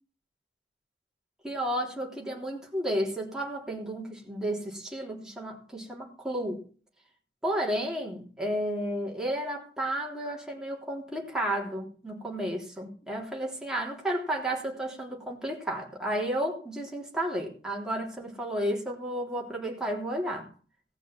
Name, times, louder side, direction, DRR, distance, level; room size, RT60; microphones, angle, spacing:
voice 1, 1.4-6.6 7.4-20.5, right 1 dB, 5° right, 3.4 m, -32 dB
18.0 x 6.2 x 7.4 m
head